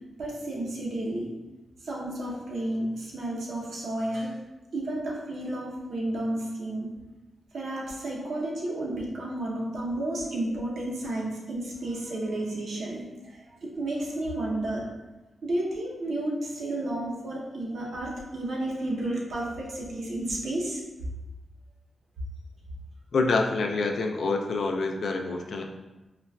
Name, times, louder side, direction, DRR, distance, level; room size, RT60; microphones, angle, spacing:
voice 1, 0.2-1.3 1.8-4.4 4.7-6.9 7.5-14.9 15.4-20.8, right 1 dB, 80° right, -3 dB, 0.7 m, -32 dB
voice 2, 23.1-25.6, left 3 dB, 70° left, 3 dB, 0.3 m, -26 dB
3.8 x 2.2 x 2.2 m, 1.1 s
cardioid pair, 90°, 0 cm